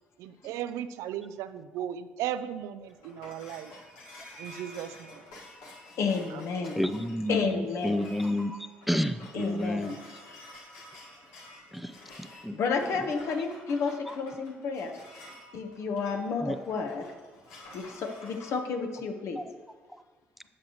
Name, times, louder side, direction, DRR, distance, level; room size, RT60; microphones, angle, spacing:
voice 1, 0.2-3.7 4.4-5.2 6.3-6.7, right 10 dB, 70° right, 12 dB, 0.4 m, -36 dB
sound 1, 2.6-18.6, left 1 dB, 75° left, 1.8 m, -50 dB
voice 2, 6.0-6.9 7.3-8.0 9.3-10.0 12.5-15.0 15.5-17.1 17.7-19.5, left 5 dB, 60° left, 4 dB, 1.1 m, -31 dB
voice 3, 6.8-8.6 8.9-9.9 11.7-12.6 16.4-16.6 19.4-19.5, equal, ahead, 12 dB, 0.5 m, -30 dB
10.5 x 7.7 x 3.1 m, 1.4 s
hypercardioid pair, 55°, 5 cm